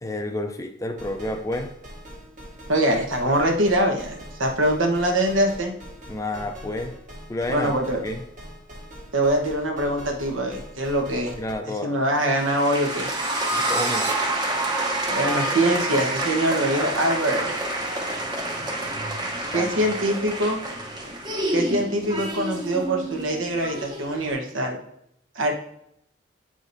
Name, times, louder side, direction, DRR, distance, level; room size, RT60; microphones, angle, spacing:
voice 1, 0.0-1.7 6.1-7.0 7.3-7.7 8.0-8.2 11.4-11.9 13.5-14.1 19.5-19.7, left 1 dB, 15° left, 6 dB, 0.4 m, -30 dB
sound 1, 1.0-11.5, equal, 40° right, 1.3 m, -42 dB
voice 2, 2.7-5.7 7.5-8.0 9.1-11.4 11.6-13.1 15.1-17.6 19.5-20.6 21.5-24.8 25.3-25.5, right 1 dB, 80° right, 2 dB, 1.1 m, -23 dB
sound 2, 12.2-14.1, right 5 dB, 55° right, 1.2 m, -35 dB
sound 3, 12.4-24.3, right 1 dB, 20° right, 0.8 m, -28 dB
8.3 x 5.0 x 2.6 m, 0.74 s
head